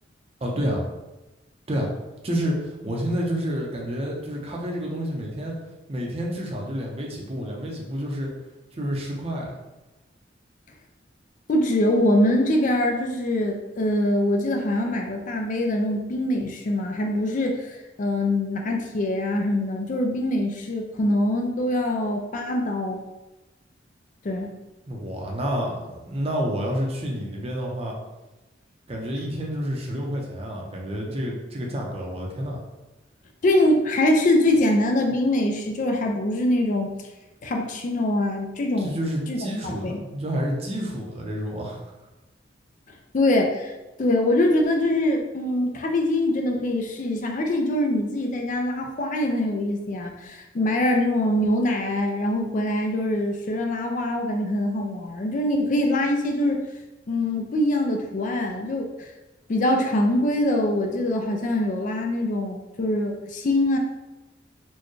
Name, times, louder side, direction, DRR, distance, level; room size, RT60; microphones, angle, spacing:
voice 1, 0.4-0.8 1.7-1.9 2.2-5.5 5.9-8.3 8.7-9.5 24.9-27.9 28.9-32.6 38.8-41.9, equal, 30° right, -1 dB, 0.6 m, -29 dB
voice 2, 11.5-23.0 24.2-24.5 33.4-36.9 37.4-39.0 39.3-40.0 43.1-43.7 44.0-56.7 57.1-58.9 59.5-63.8, left 1 dB, 45° left, 3 dB, 0.4 m, -23 dB
4.3 x 2.2 x 3.1 m, 1.1 s
head